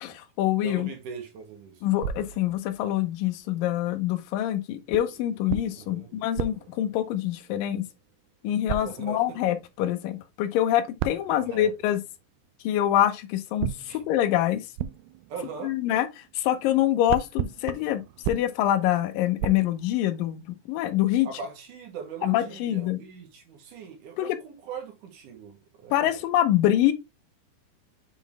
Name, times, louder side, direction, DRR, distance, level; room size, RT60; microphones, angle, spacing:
voice 1, 0.0-0.9 1.8-7.9 8.4-12.0 12.6-13.7 14.1-14.6 15.6-18.0 18.3-21.3 22.2-23.0 24.2-24.4 25.9-26.9, left 12 dB, 75° left, 2.3 m, -25 dB
voice 2, 0.6-1.8 5.8-6.1 8.8-9.4 11.3-11.7 13.9-14.0 15.3-15.8 21.2-26.2, right 6 dB, 60° right, 2.8 m, -40 dB
sound 1, 2.0-3.2 4.9-7.8 8.7-9.5 11.0-12.1 13.6-16.5 16.7-20.4, right 10 dB, 85° right, 2.1 m, -36 dB
7.4 x 3.8 x 3.4 m
omnidirectional pair, 4.7 m